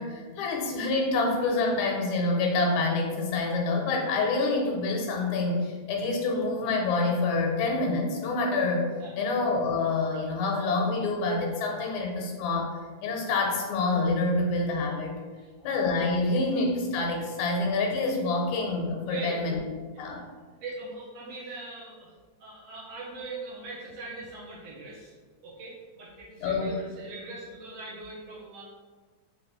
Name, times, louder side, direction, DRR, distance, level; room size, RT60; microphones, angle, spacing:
voice 1, 0.0-8.9 9.2-12.7 13.0-15.2 15.6-19.6 20.0-20.2 26.4-26.7, left 3 dB, 80° left, 0 dB, 2.0 m, -27 dB
voice 2, 19.0-19.5 19.9-20.0 20.6-22.1 22.4-25.1 25.4-28.6, right 3 dB, 80° right, -4 dB, 1.5 m, -40 dB
5.1 x 2.8 x 3.0 m, 1.5 s
omnidirectional pair, 3.5 m